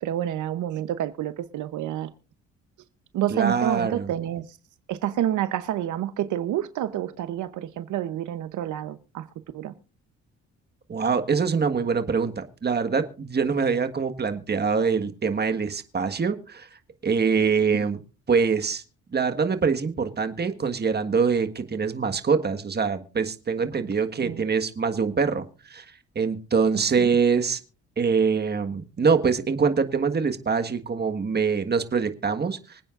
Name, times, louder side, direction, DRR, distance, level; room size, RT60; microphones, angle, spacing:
voice 1, 0.0-2.1 3.1-4.6 4.9-9.3 9.5-9.7 17.7-17.9 24.2-24.4 27.0-27.1, right 11 dB, 75° right, 0.8 m, -28 dB
voice 2, 3.3-4.1 10.9-16.7 17.0-18.0 18.3-18.8 19.1-25.9 26.1-27.6 28.0-32.8, right 5 dB, 35° right, 1.6 m, -24 dB
25.5 x 8.9 x 2.5 m
cardioid pair, 90°, 30 cm